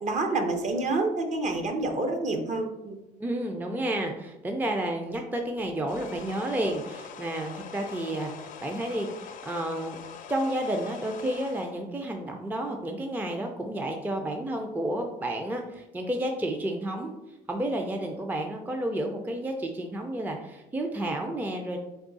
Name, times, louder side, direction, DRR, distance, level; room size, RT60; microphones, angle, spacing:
voice 1, 0.0-3.0, right 2 dB, 45° right, 5 dB, 0.8 m, -28 dB
voice 2, 3.2-10.0 10.3-17.1 17.5-21.8, right 1 dB, 10° right, 3 dB, 0.4 m, -31 dB
sound 1, 5.9-11.7, left 7 dB, 50° left, 0.5 m, -44 dB
3.5 x 3.5 x 3.9 m, 0.96 s
cardioid pair, 110°, 17 cm